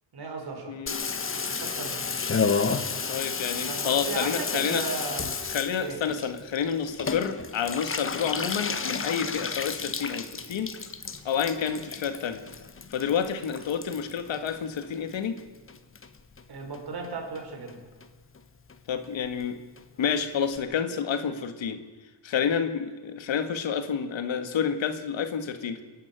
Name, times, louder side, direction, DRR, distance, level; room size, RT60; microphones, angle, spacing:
voice 1, 0.1-0.8 1.5-2.2 3.5-5.3 5.8-6.0 16.5-17.8, right 4 dB, 55° right, 2 dB, 5.2 m, -36 dB
voice 2, 0.7-1.1 3.1-4.8 5.5-10.7 11.2-12.4 12.9-15.4 18.9-19.6 20.0-21.8 22.2-25.8, left 7 dB, 85° left, 8 dB, 1.9 m, -29 dB
Water tap faucet / Bathtub (filling or washing), 0.9-15.4 15.7-16.4 16.7-16.8 17.0-17.1 17.3-17.7 18.0-18.1 18.3-18.4 18.7-18.8 19.0-19.1 19.4-19.5 19.8-19.9 20.1-20.2 20.5-20.6, left 5 dB, 30° left, 1.2 m, -32 dB
27.5 x 11.5 x 9.1 m, 1.3 s
wide cardioid pair, 165°, 45 cm